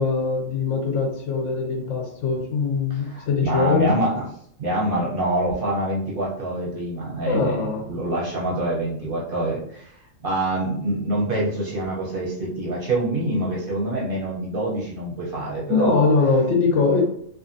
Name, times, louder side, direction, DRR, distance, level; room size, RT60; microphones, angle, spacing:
voice 1, 0.0-4.0 7.3-7.8 15.7-17.0, left 4 dB, 70° left, 1 dB, 1.0 m, -22 dB
voice 2, 2.9-4.3 4.6-9.9 10.2-16.1, right 1 dB, 50° right, -4 dB, 0.7 m, -26 dB
2.5 x 2.5 x 2.5 m, 0.67 s
omnidirectional pair, 1.4 m